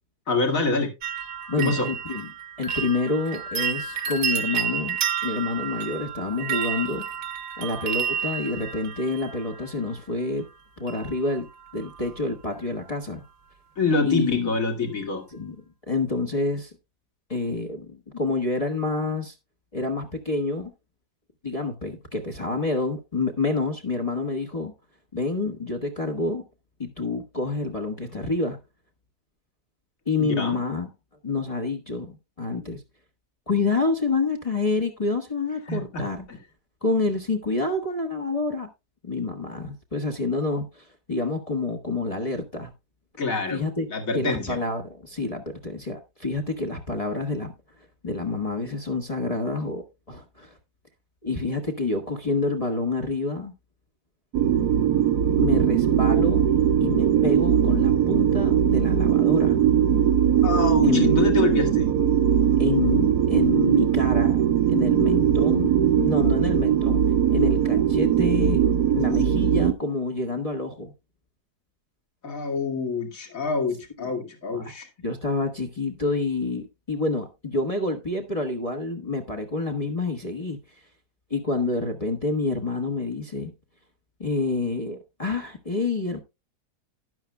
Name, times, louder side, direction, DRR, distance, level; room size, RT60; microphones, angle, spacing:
voice 1, 0.3-0.9 1.6-1.9 13.8-15.2 30.2-30.6 35.7-36.4 43.2-43.6 43.9-44.6 60.4-61.9 72.2-74.9, left 3 dB, 55° left, 2.5 m, -26 dB
sound 1, 1.0-9.9 10.9-11.4 11.7-12.2 12.5-12.6, right 8 dB, 60° right, 1.4 m, -31 dB
voice 2, 1.5-2.3 2.6-7.0 7.6-10.5 10.8-11.5 11.7-13.2 14.0-14.5 15.3-15.6 15.9-16.7 17.3-19.3 19.7-20.7 21.4-24.7 25.1-26.4 26.8-28.6 30.1-30.9 31.2-32.8 33.5-36.3 36.8-38.7 39.0-42.7 43.5-43.9 44.1-47.5 48.0-49.8 50.1-50.6 51.2-53.5 55.4-56.4 56.8-59.6 60.8-61.1 62.6-64.4 64.7-65.7 66.0-67.0 67.3-68.7 68.9-70.9 74.0-74.1 74.5-74.7 75.0-80.6 81.3-83.5 84.2-86.2, left 3 dB, 25° left, 1.3 m, -28 dB
sound 2, 54.3-69.7, right 9 dB, 80° right, 1.5 m, -20 dB
12.5 x 10.5 x 2.2 m
omnidirectional pair, 1.7 m